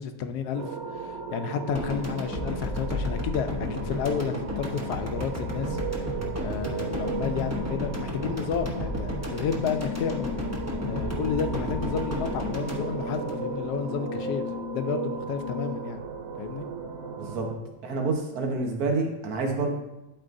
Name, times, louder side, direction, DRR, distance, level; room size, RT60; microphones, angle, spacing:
voice 1, 0.0-5.8 6.4-10.4 10.8-14.4 14.7-16.0 16.4-16.7, left 6 dB, 75° left, 8 dB, 1.1 m, -31 dB
sound 1, 0.5-17.5, right 5 dB, 85° right, 1.4 m, -37 dB
sound 2, 1.7-13.9, left 1 dB, 15° right, 0.5 m, -33 dB
Brass instrument, 9.6-16.0, left 10 dB, 40° left, 0.5 m, -38 dB
voice 2, 17.2-17.5 17.8-19.7, right 3 dB, 65° right, 2 dB, 1.5 m, -28 dB
11.5 x 4.6 x 2.6 m, 0.98 s
omnidirectional pair, 1.8 m